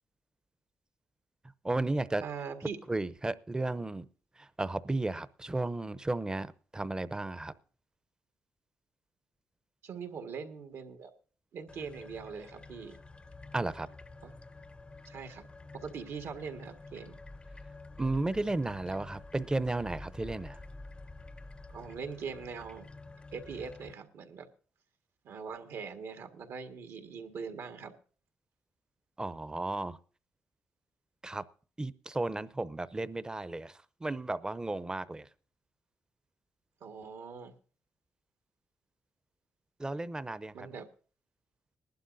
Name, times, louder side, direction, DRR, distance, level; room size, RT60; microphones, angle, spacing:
voice 1, 1.6-2.2 2.9-4.1 4.4-6.5 6.7-7.5 13.5-13.9 18.0-20.6 29.2-30.0 31.2-31.4 31.8-35.3 39.8-40.5, right 2 dB, 15° right, 0.7 m, -34 dB
voice 2, 2.2-2.8 9.8-11.1 11.5-13.0 14.2-14.3 15.0-15.5 15.7-17.2 21.7-22.9 23.3-24.5 25.2-27.9 36.8-37.5 40.5-40.9, right 6 dB, 75° right, 1.7 m, -42 dB
sound 1, 11.7-23.9, left 2 dB, 20° left, 0.6 m, -49 dB
20.5 x 11.5 x 2.6 m
cardioid pair, 90°, 5 cm